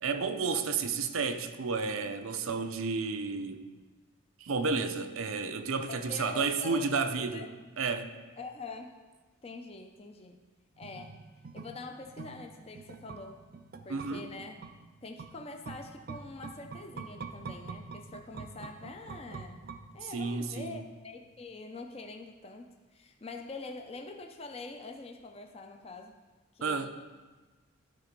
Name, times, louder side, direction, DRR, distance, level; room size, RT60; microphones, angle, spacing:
voice 1, 0.0-3.7 4.4-7.5 7.8-8.1 13.9-14.3 20.1-20.8 26.6-26.9, right 4 dB, 90° right, 0.6 m, -31 dB
voice 2, 5.9-7.5 8.4-9.0 9.4-10.4 10.8-11.2 11.5-13.4 13.8-14.6 15.0-19.6 19.9-26.1 26.5-26.9, left 3 dB, 30° left, 0.5 m, -45 dB
sound 1, 10.8-20.3 20.6-20.7, right 4 dB, 45° right, 0.4 m, -46 dB
12.5 x 4.2 x 5.2 m
head